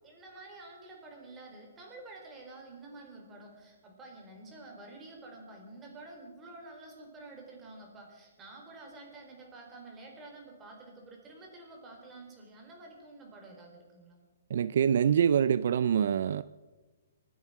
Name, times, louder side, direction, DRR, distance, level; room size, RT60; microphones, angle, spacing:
voice 1, 0.0-14.2, right 2 dB, 15° right, 4.6 m, -49 dB
voice 2, 14.5-16.4, right 8 dB, 60° right, 0.4 m, -25 dB
25.0 x 9.4 x 6.0 m
hypercardioid pair, 155°, 0 cm